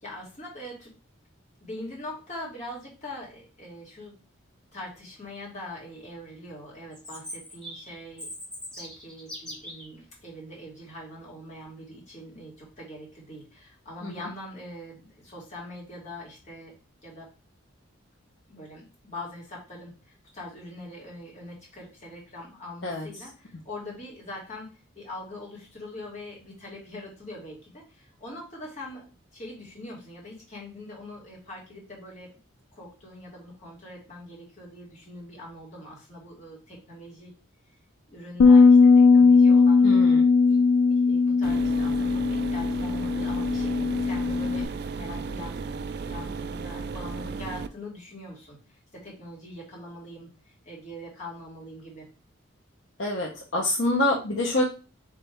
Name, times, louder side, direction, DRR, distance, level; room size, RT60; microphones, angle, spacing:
voice 1, 0.0-0.9 1.6-4.1 4.7-8.3 8.8-16.7 17.0-17.3 18.5-32.4 32.7-37.3 38.1-39.9 40.5-40.6 40.8-50.3 50.6-52.1, left 1 dB, 35° left, -5 dB, 2.1 m, -42 dB
Chirp tweet, 6.9-9.9, equal, 5° left, 1.0 m, -41 dB
Bass guitar, 38.4-44.6, left 4 dB, 85° left, 0.4 m, -18 dB
voice 2, 39.8-40.3 53.0-54.6, left 1 dB, 55° left, -2 dB, 0.8 m, -26 dB
sound 1, 41.4-47.7, right 4 dB, 50° right, 0.3 m, -35 dB
3.6 x 3.2 x 4.4 m, 0.33 s
head